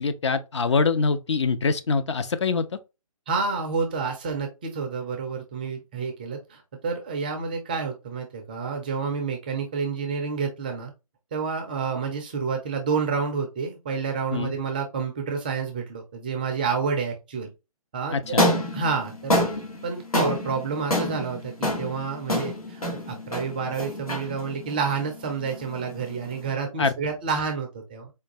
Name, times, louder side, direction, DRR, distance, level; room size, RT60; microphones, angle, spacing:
voice 1, 0.0-2.7 14.3-14.5 18.1-18.4 26.8-26.9, left 4 dB, 50° left, 0.5 m, -24 dB
voice 2, 3.3-10.9 11.3-17.5 17.9-19.5 19.8-28.1, right 5 dB, 15° right, 0.4 m, -29 dB
sound 1, 18.2-26.5, left 1 dB, 75° left, 1.6 m, -28 dB
4.4 x 2.3 x 2.8 m
figure-of-eight pair, 140°, 19 cm